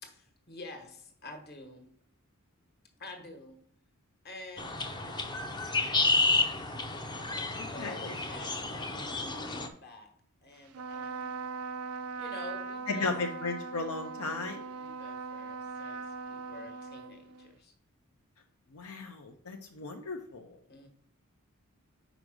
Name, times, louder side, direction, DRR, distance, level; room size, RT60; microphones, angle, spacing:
voice 1, 0.0-1.9 3.0-3.6 4.2-5.4 7.3-9.1 9.3-10.1 10.4-11.4 12.2-13.1 14.8-17.7 20.7-20.9, left 2 dB, 45° left, 4 dB, 1.3 m, -48 dB
sound 1, 4.6-9.7, left 3 dB, 20° left, 0.6 m, -31 dB
voice 2, 7.6-8.2 12.9-14.7 18.7-20.6, left 3 dB, 75° left, 3 dB, 0.7 m, -36 dB
Trumpet, 10.7-17.5, right 5 dB, 85° right, 0.5 m, -40 dB
5.1 x 4.9 x 6.2 m, 0.64 s
head